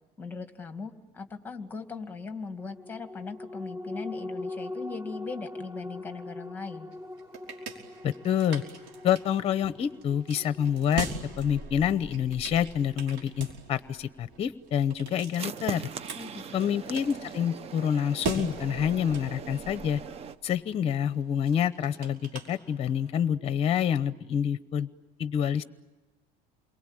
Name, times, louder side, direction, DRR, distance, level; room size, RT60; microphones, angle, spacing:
voice 1, 0.2-6.9 16.2-16.8, left 4 dB, 10° left, 7 dB, 2.0 m, -39 dB
sound 1, 2.6-13.4 13.8-13.9, left 2 dB, 15° right, 1.5 m, -42 dB
sound 2, 6.9-23.2, right 4 dB, 65° right, 5.1 m, -42 dB
voice 2, 8.0-8.6 9.0-11.1 11.4-15.8 16.5-20.0 20.4-24.9 25.2-25.6, left 9 dB, 30° left, 14 dB, 0.9 m, -27 dB
sound 3, 15.4-20.4, right 7 dB, 30° right, 0.8 m, -40 dB
29.0 x 22.5 x 8.9 m, 1.1 s
cardioid pair, 155°, 20 cm